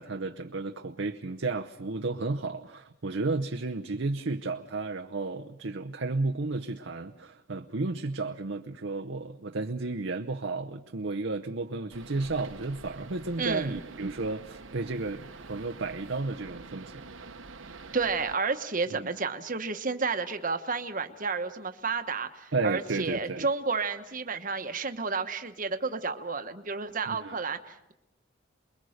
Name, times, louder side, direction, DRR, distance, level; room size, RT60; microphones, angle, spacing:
voice 1, 0.0-17.0 18.9-19.1 22.5-23.5 27.1-27.4, right 3 dB, 70° right, 0.8 m, -33 dB
sound 1, 11.9-18.4, right 3 dB, 90° right, 1.3 m, -46 dB
voice 2, 13.4-13.8 17.9-27.9, right 4 dB, 45° right, 1.2 m, -31 dB
28.5 x 22.0 x 6.5 m
head